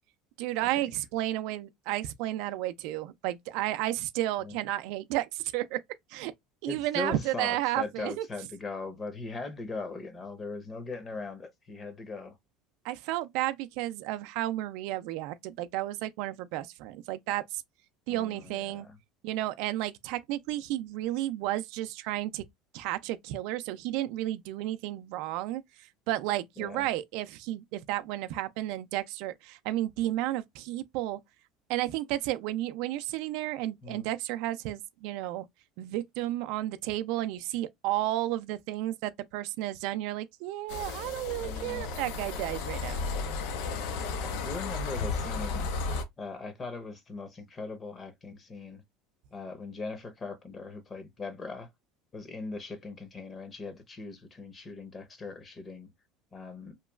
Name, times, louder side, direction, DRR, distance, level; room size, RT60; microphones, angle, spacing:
voice 1, 0.4-5.8 6.1-6.3 6.6-8.3 12.8-17.6 18.1-18.9 19.2-22.4 22.7-25.6 26.1-31.2 31.7-35.5 35.8-43.0, right 15 dB, 70° right, 0.3 m, -32 dB
voice 2, 6.7-12.4 18.1-19.0 26.6-26.9 33.8-34.1 41.4-41.9 44.4-45.7 46.2-48.8 49.3-51.7 52.1-55.9 56.3-56.7, left 3 dB, 25° left, 0.8 m, -40 dB
sound 1, 40.7-46.0, left 4 dB, 75° left, 0.5 m, -34 dB
2.9 x 2.3 x 2.2 m
supercardioid pair, 110°, 0 cm